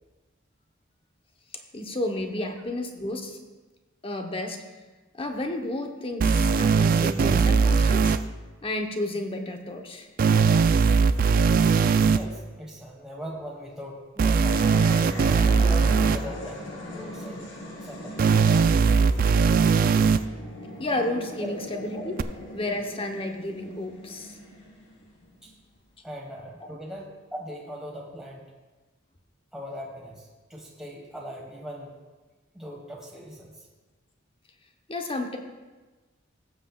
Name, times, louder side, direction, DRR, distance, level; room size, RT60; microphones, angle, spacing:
voice 1, 1.7-3.4 4.0-4.6 5.1-8.1 8.6-10.1 20.8-24.4 34.9-35.4, left 1 dB, 30° left, 3 dB, 0.9 m, -31 dB
sound 1, 6.2-8.2 10.2-12.2 14.2-16.2 18.2-20.2 22.2-22.3, right 5 dB, 45° right, 0.3 m, -20 dB
voice 2, 11.2-11.5 11.9-14.7 15.5-17.5 17.8-18.2 21.4-21.6 25.4-25.5 26.0-28.4 29.5-31.9 32.5-33.7, equal, 5° right, -4 dB, 1.3 m, -40 dB
sound 2, 14.2-25.6, left 1 dB, 80° left, 2.5 m, -40 dB
17.5 x 7.4 x 2.3 m, 1.3 s
head